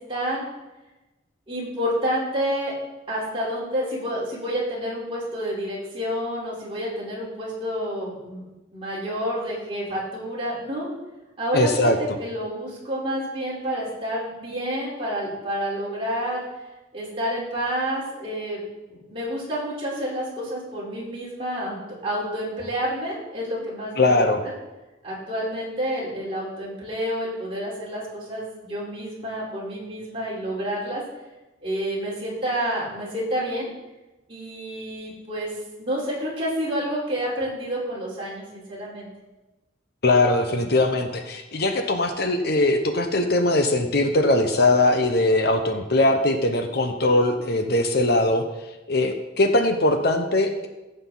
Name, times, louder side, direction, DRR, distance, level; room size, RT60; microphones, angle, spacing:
voice 1, 0.1-0.5 1.5-2.7 3.1-8.4 8.7-10.9 11.4-16.4 16.9-18.6 18.9-24.5 25.0-31.0 31.6-33.7 34.3-35.5 35.8-39.1, equal, 30° right, -6 dB, 4.1 m, -29 dB
voice 2, 11.5-12.0 24.0-24.4 40.0-48.5 48.9-50.7, left 2 dB, 55° left, 6 dB, 1.0 m, -21 dB
15.5 x 7.9 x 4.0 m, 1.1 s
head